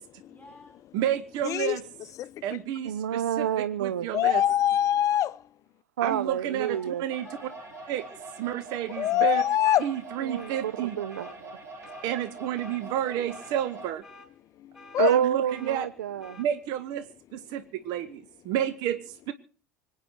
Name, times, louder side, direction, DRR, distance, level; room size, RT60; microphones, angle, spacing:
voice 1, 0.3-0.8 6.6-8.4, left 2 dB, 10° left, 4.7 m, -52 dB
voice 2, 0.9-1.8 2.4-4.4 6.0-7.3 7.9-8.0 8.4-9.4 9.8-11.0 12.0-14.0 15.0-15.9 16.4-17.1 17.3-19.3, right 11 dB, 50° right, 1.1 m, -30 dB
voice 3, 1.4-1.8 4.1-5.3 9.0-9.9 14.9-15.1, left 11 dB, 40° left, 0.7 m, -23 dB
voice 4, 2.8-4.1 6.0-7.0 10.2-11.5 15.0-16.4, right 10 dB, 70° right, 0.6 m, -28 dB
sound 1, 7.1-13.9, right 2 dB, 35° right, 3.5 m, -44 dB
sound 2, 8.9-9.2 9.6-9.9 10.4-10.6 11.1-11.4 11.8-12.1 12.6-12.8 13.3-13.6 14.0-14.3 14.7-15.0 15.5-15.7 16.2-16.5, left 2 dB, 5° right, 5.5 m, -49 dB
25.0 x 9.4 x 4.5 m
figure-of-eight pair, 70°, 9 cm